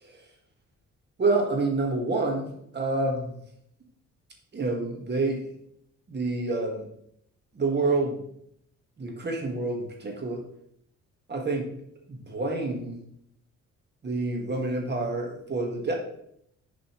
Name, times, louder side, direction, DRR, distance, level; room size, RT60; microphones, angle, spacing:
voice 1, 1.2-2.5 2.7-3.3 4.5-5.5 6.1-6.9 7.5-8.2 9.0-10.4 11.3-11.7 12.1-13.0 14.0-16.0, right 3 dB, 35° right, 1 dB, 1.7 m, -28 dB
7.1 x 5.1 x 3.1 m, 0.72 s
cardioid pair, 90°, 30 cm